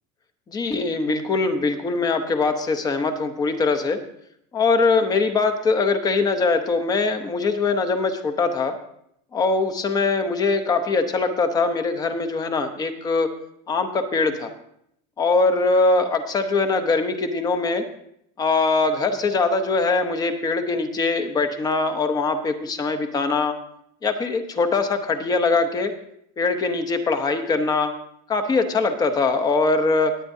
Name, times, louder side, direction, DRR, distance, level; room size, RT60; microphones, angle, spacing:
voice 1, 0.5-4.0 4.5-8.8 9.3-13.3 13.7-14.5 15.2-17.8 18.4-23.6 24.0-25.9 26.4-27.9 28.3-30.2, left 3 dB, 20° left, 7 dB, 0.8 m, -22 dB
19.0 x 9.0 x 2.7 m, 0.74 s
cardioid pair, 170°, 21 cm